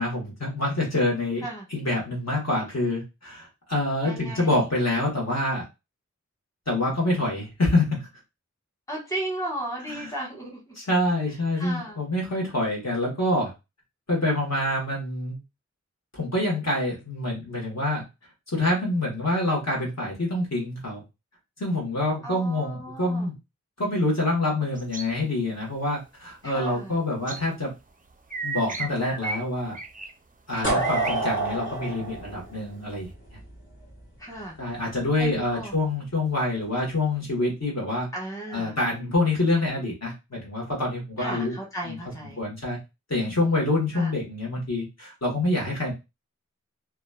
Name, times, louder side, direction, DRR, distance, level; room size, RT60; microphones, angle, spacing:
voice 1, 0.0-1.4 1.7-5.6 6.7-8.1 9.9-10.2 10.7-13.5 14.1-15.4 16.1-18.0 18.5-21.0 21.6-23.3 23.8-27.7 28.4-29.7 30.5-33.4 34.6-38.1 38.5-41.6 41.8-42.0 42.4-42.8 43.1-45.9, left 2 dB, 60° left, -3 dB, 1.2 m, -26 dB
voice 2, 4.0-4.6 8.9-10.7 11.6-12.0 22.2-23.3 26.4-27.0 30.5-30.8 34.2-34.5 35.2-35.7 38.1-38.8 41.2-42.4 43.9-44.1, right 1 dB, 10° left, -2 dB, 1.1 m, -35 dB
sound 1, 24.8-25.1 27.3-27.4 28.3-29.4 29.7-30.1 30.7-31.7, right 4 dB, 30° right, 0.4 m, -34 dB
sound 2, 30.6-33.5, right 2 dB, 40° left, 1.3 m, -27 dB
2.8 x 2.3 x 2.2 m, 0.25 s
wide cardioid pair, 45°, 29 cm